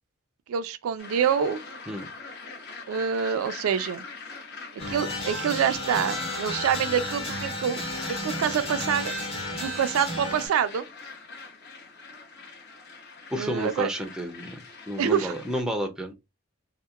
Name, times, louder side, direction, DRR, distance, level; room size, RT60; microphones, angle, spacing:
voice 1, 0.5-1.6 2.9-4.0 4.9-7.8 8.2-9.2 9.6-10.8 13.3-13.9 15.0-15.3, right 8 dB, 80° right, 0.3 m, -26 dB
sound 1, 1.0-15.6, left 4 dB, 50° left, 0.7 m, -43 dB
sound 2, 4.8-10.5, left 1 dB, 30° left, 1.0 m, -33 dB
voice 2, 13.3-14.6 14.9-16.1, equal, 5° right, 0.4 m, -30 dB
2.8 x 2.0 x 2.3 m
head